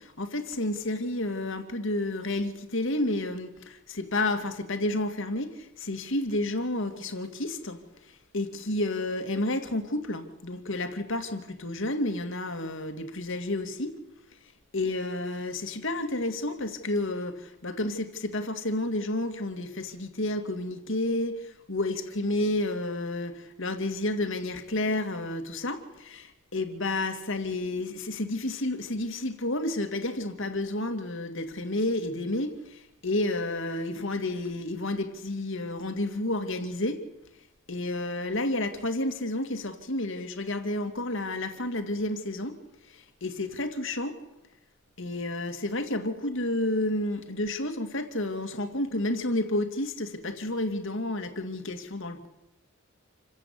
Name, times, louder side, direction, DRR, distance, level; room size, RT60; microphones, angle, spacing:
voice 1, 0.0-14.0 14.7-37.0 37.7-42.6 42.9-44.2 45.0-52.3, left 1 dB, 60° left, 2.5 m, -31 dB
28.0 x 15.0 x 8.6 m
head